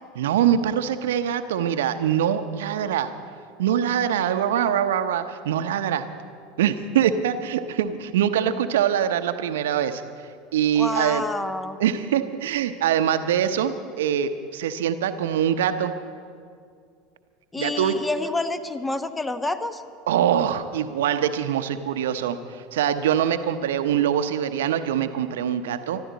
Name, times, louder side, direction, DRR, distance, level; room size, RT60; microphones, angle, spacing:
voice 1, 0.2-3.1 3.6-6.1 6.6-10.0 10.5-11.2 11.8-15.9 17.6-17.9 20.1-26.0, right 9 dB, 70° right, 10 dB, 0.8 m, -23 dB
voice 2, 10.8-11.8 17.5-19.8, left 2 dB, 15° left, 10 dB, 1.1 m, -28 dB
25.0 x 12.5 x 4.1 m, 2.2 s
figure-of-eight pair, 80°, 0 cm